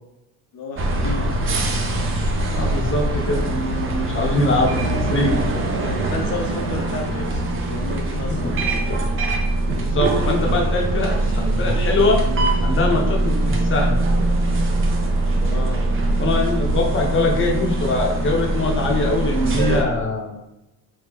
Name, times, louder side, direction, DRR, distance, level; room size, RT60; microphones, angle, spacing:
voice 1, 0.5-1.6 5.5-9.0 15.4-15.9, left 2 dB, 65° left, 0 dB, 0.8 m, -32 dB
sound 1, 0.8-19.8, right 2 dB, 30° right, 0.6 m, -22 dB
voice 2, 2.4-5.4 8.4-8.6 9.8-12.2 12.6-14.0 16.2-20.4, left 2 dB, 30° left, 0 dB, 0.8 m, -22 dB
3.3 x 2.7 x 3.4 m, 0.92 s
cardioid pair, 120°, 39 cm